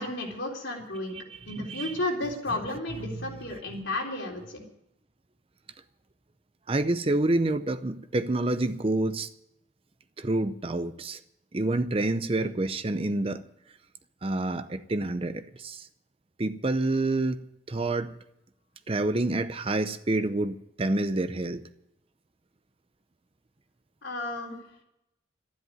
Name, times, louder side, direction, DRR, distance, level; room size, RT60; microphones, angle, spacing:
voice 1, 0.0-1.2 1.5-4.6 24.0-24.6, left 2 dB, 65° left, 3.8 m, -33 dB
voice 2, 1.3-1.9 3.1-3.2 6.7-9.3 10.2-11.2 11.5-13.4 14.2-15.9 16.4-17.4 17.7-18.2 18.9-21.6, right 2 dB, 30° right, 0.6 m, -28 dB
12.5 x 11.0 x 9.3 m
head